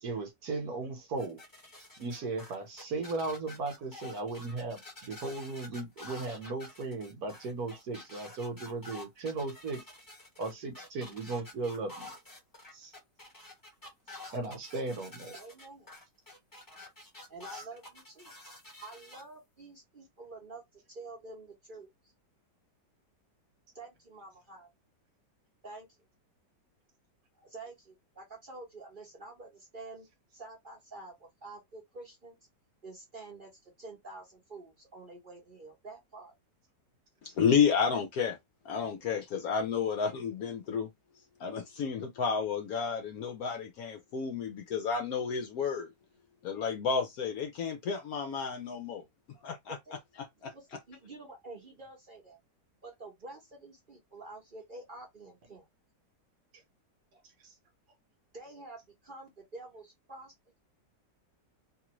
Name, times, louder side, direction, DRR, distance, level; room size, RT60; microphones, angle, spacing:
voice 1, 0.0-1.4 2.0-9.8 10.4-12.1 12.7-12.9 14.3-15.3, right 3 dB, 65° right, 1.2 m, -36 dB
sound 1, 1.2-19.2, left 2 dB, 15° left, 0.8 m, -49 dB
voice 2, 15.3-15.9 17.3-18.3 18.8-20.6 20.9-21.9 23.7-24.7 25.6-25.9 27.3-30.1 30.3-32.4 32.8-36.3 49.7-49.9 50.5-52.4 52.8-55.7 58.3-60.6, right 2 dB, 40° right, 0.8 m, -48 dB
voice 3, 37.4-38.4 38.6-40.9 41.4-45.9 46.4-49.0 49.4-49.8 50.2-50.5, left 6 dB, 70° left, 0.9 m, -31 dB
2.9 x 2.4 x 2.9 m
omnidirectional pair, 1.9 m